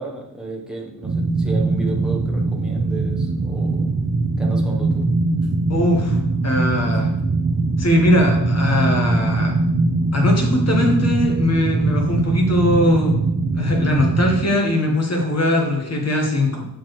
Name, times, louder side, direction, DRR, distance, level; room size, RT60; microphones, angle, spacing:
voice 1, 0.0-3.9 4.4-5.1, right 2 dB, ahead, -1 dB, 0.8 m, -33 dB
sound 1, 1.0-14.4, right 3 dB, 30° right, 0.5 m, -21 dB
voice 2, 5.7-6.2 6.4-7.1 7.8-9.5 10.1-13.2 13.5-16.7, left 1 dB, 40° left, 1 dB, 1.1 m, -20 dB
7.0 x 4.4 x 3.1 m, 0.85 s
wide cardioid pair, 160°, 40 cm